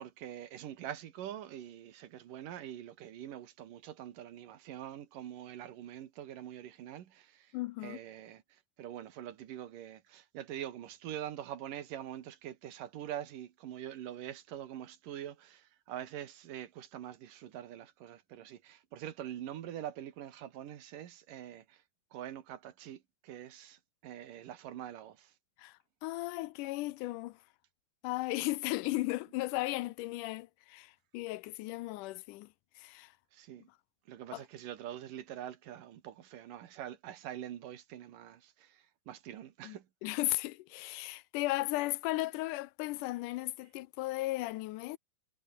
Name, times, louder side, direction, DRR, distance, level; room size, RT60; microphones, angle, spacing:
voice 1, 0.0-7.5 7.8-8.4 8.8-21.8 22.1-25.3 33.3-33.7 34.1-39.9, right 11 dB, 85° right, 3.3 m, -44 dB
voice 2, 7.5-8.0 25.6-27.4 28.0-32.5 32.8-33.1 34.3-34.4 39.6-39.8 40.0-45.0, left 19 dB, 80° left, 2.1 m, -36 dB
omnidirectional pair, 3.7 m